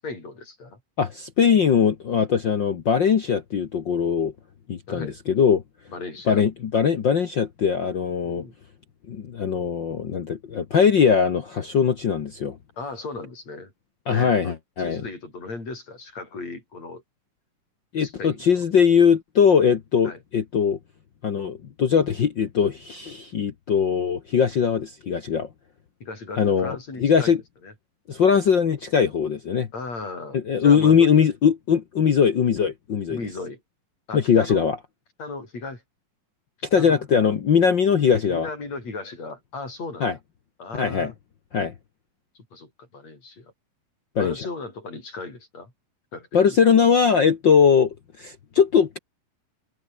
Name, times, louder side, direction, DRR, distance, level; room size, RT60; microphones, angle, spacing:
voice 1, 0.0-0.8 4.9-5.2 5.9-6.4 8.2-8.6 12.8-13.7 14.1-17.0 18.0-18.6 20.0-20.2 26.0-27.4 27.6-27.7 29.7-31.2 33.1-33.6 34.1-34.7 35.2-35.8 36.7-37.3 38.3-40.1 40.6-41.1 42.5-43.5 44.2-45.7 46.1-46.6, left 3 dB, 45° left, 9.1 m, -36 dB
voice 2, 1.0-4.3 4.7-5.6 6.3-8.4 9.1-12.6 14.1-15.0 17.9-20.8 21.2-25.5 26.4-27.4 28.1-29.7 30.3-33.2 34.1-34.8 36.7-38.5 40.0-40.1 40.7-41.1 41.5-41.7 44.1-44.3 46.3-49.0, left 7 dB, 65° left, 1.1 m, -20 dB
omnidirectional pair, 4.1 m